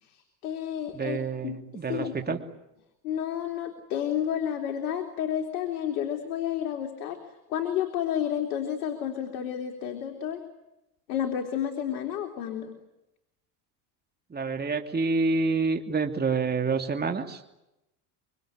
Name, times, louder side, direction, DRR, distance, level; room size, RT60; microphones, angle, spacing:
voice 1, 0.0-1.2 1.4-1.6 1.9-2.4 3.0-7.2 7.5-10.4 11.1-12.8, left 9 dB, 80° left, 4 dB, 3.6 m, -31 dB
voice 2, 0.9-2.4 14.3-17.4, right 4 dB, 20° right, 4 dB, 2.7 m, -28 dB
26.0 x 24.5 x 9.0 m, 0.91 s
supercardioid pair, 90°, 49 cm